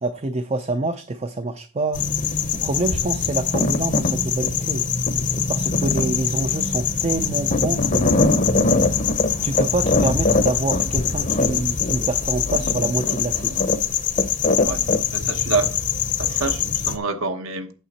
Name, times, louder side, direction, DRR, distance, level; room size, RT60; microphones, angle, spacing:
voice 1, 0.0-2.0 2.6-4.9 5.5-8.4 9.4-13.7, right 2 dB, 30° right, 0.4 m, -26 dB
sound 1, 1.9-17.0, left 5 dB, 35° left, 0.6 m, -22 dB
voice 2, 15.1-15.7 16.2-17.7, right 4 dB, 70° right, 1.1 m, -26 dB
8.6 x 6.6 x 4.2 m
head